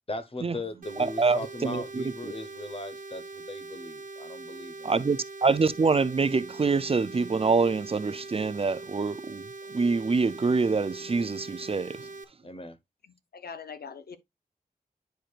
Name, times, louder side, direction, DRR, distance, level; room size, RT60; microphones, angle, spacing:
voice 1, 0.1-4.9 12.4-12.8, left 2 dB, 40° left, 1.0 m, -38 dB
sound 1, 0.8-12.2, right 3 dB, 65° right, 1.3 m, -42 dB
voice 2, 1.0-2.3 4.8-12.1, right 4 dB, 40° right, 0.5 m, -26 dB
voice 3, 13.3-14.2, left 6 dB, 85° left, 0.8 m, -41 dB
10.5 x 4.7 x 2.4 m
wide cardioid pair, 85°, 16 cm